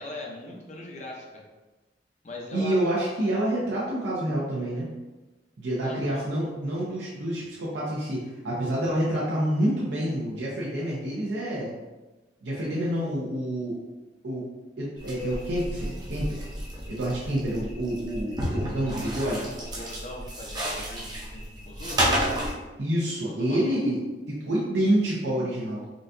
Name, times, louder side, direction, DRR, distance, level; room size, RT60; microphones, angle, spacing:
voice 1, 0.0-1.4 2.2-2.8 5.8-6.3 19.6-22.2 23.2-23.8, left 1 dB, 40° left, -2 dB, 0.6 m, -40 dB
voice 2, 2.5-4.9 5.6-11.7 12.4-13.8 14.2-14.5 14.8-16.5 16.9-19.5 22.8-24.0 24.3-25.8, right 1 dB, 80° right, -6 dB, 0.6 m, -28 dB
sound 1, 15.0-22.5, right 1 dB, 25° right, 0.6 m, -31 dB
3.8 x 2.3 x 2.6 m, 1.1 s
head